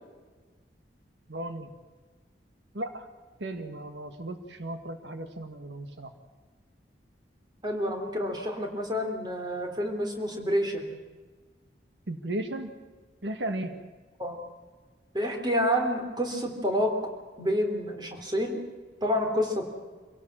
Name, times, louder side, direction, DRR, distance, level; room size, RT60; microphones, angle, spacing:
voice 1, 1.3-1.8 2.7-3.1 3.4-6.1 12.1-12.7 13.2-13.8, right 1 dB, 80° right, 7 dB, 1.7 m, -35 dB
voice 2, 7.6-10.9 14.2-14.4 15.1-16.9 17.4-18.6 19.0-19.7, equal, 25° right, 3 dB, 3.2 m, -28 dB
26.0 x 17.5 x 7.4 m, 1.4 s
head